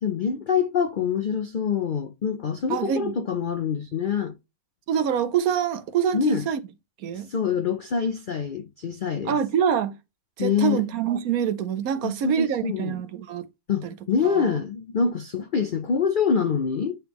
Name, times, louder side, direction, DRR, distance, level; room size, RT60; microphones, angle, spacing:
voice 1, 0.0-4.3 6.1-6.4 7.1-9.4 10.4-10.8 12.0-13.0 13.7-17.0, left 6 dB, 80° left, 0.4 m, -25 dB
voice 2, 2.7-3.1 4.9-6.6 7.0-7.3 9.3-9.9 10.4-13.5 13.8-13.9 14.2-14.6, right 8 dB, 70° right, 1.1 m, -25 dB
9.0 x 3.4 x 3.1 m
omnidirectional pair, 1.7 m